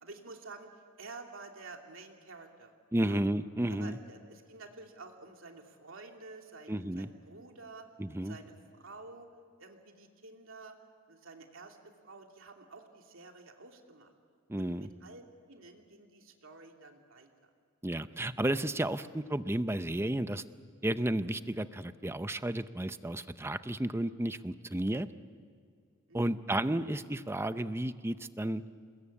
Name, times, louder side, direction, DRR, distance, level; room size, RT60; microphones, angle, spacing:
voice 1, 0.0-0.7 1.0-2.7 3.0-3.2 3.7-7.9 8.2-9.3 9.6-10.7 11.1-11.8 12.0-14.1 14.6-17.3 26.1-26.4, right 3 dB, 65° right, 2 dB, 2.8 m, -50 dB
voice 2, 2.9-4.0 6.7-7.1 8.0-8.4 14.5-14.9 17.8-20.4 20.8-25.1 26.1-28.6, right 1 dB, 10° right, 12 dB, 0.6 m, -32 dB
28.5 x 21.0 x 8.5 m, 2.1 s
head